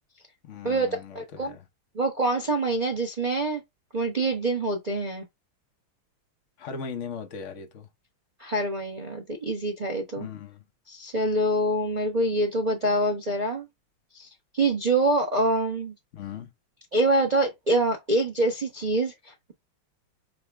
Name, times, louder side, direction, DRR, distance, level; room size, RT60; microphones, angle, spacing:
voice 1, 0.4-1.6 6.6-7.9 10.2-10.6 16.1-16.5, left 6 dB, 65° left, 0.7 m, -38 dB
voice 2, 1.1-1.5 1.9-3.6 3.9-5.2 8.4-10.3 10.9-13.7 14.1-14.3 14.5-15.9 16.9-19.5, right 2 dB, 35° right, 0.7 m, -25 dB
6.5 x 2.3 x 3.4 m
omnidirectional pair, 2.4 m